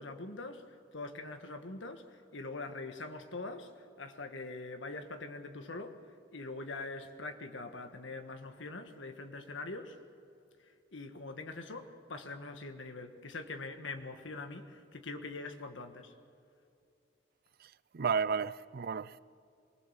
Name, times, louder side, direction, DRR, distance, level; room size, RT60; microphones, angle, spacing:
voice 1, 0.0-6.0 6.3-10.0 10.9-16.1, left 3 dB, 80° left, 1.6 m, -43 dB
voice 2, 17.9-19.2, right 6 dB, 55° right, 0.5 m, -32 dB
24.5 x 20.0 x 7.4 m
head